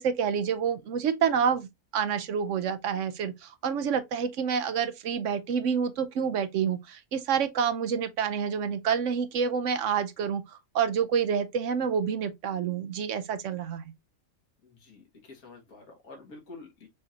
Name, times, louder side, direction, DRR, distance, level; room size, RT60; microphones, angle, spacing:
voice 1, 0.0-1.7 1.9-13.9, right 7 dB, 65° right, 0.9 m, -28 dB
voice 2, 14.6-16.9, left 3 dB, 80° left, 2.0 m, -48 dB
6.3 x 2.6 x 2.7 m
omnidirectional pair, 1.5 m